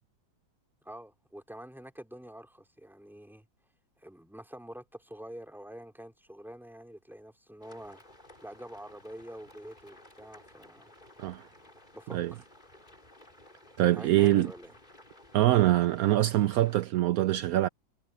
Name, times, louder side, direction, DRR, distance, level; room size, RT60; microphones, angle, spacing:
voice 1, 0.8-3.5 4.0-8.0 8.4-10.9 11.9-12.4 13.9-14.7, right 1 dB, ahead, 2.7 m, -46 dB
sound 1, 7.6-16.9, left 1 dB, 25° left, 5.3 m, -56 dB
voice 2, 13.8-14.5 15.3-17.7, right 14 dB, 80° right, 0.8 m, -24 dB
omnidirectional pair, 2.1 m